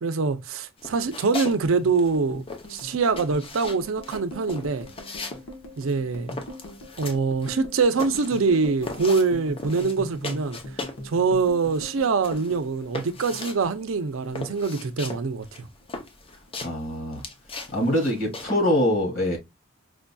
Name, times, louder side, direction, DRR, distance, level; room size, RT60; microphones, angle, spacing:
voice 1, 0.0-2.4 2.7-4.9 5.8-6.3 7.0-10.6 11.0-15.7, right 4 dB, 85° right, 0.5 m, -24 dB
sound 1, 0.8-1.6 1.9-11.1 11.4-18.7, left 2 dB, 30° left, 0.6 m, -38 dB
sound 2, 1.6-14.1 14.3-15.4 15.6-16.0 16.3-17.0, equal, 70° left, 1.1 m, -41 dB
voice 2, 16.6-17.2 17.7-19.4, left 1 dB, 45° left, 2.0 m, -24 dB
4.9 x 2.6 x 2.2 m
head